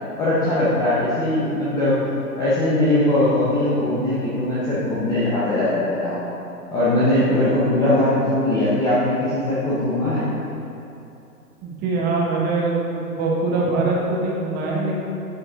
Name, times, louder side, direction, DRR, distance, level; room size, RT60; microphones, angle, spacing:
voice 1, 0.2-2.0 2.4-6.2 6.7-10.3, left 1 dB, 10° left, -9 dB, 0.6 m, -20 dB
voice 2, 11.6-15.0, right 3 dB, 20° right, -3 dB, 1.2 m, -23 dB
11.0 x 4.9 x 3.7 m, 2.8 s
figure-of-eight pair, 120°, 48 cm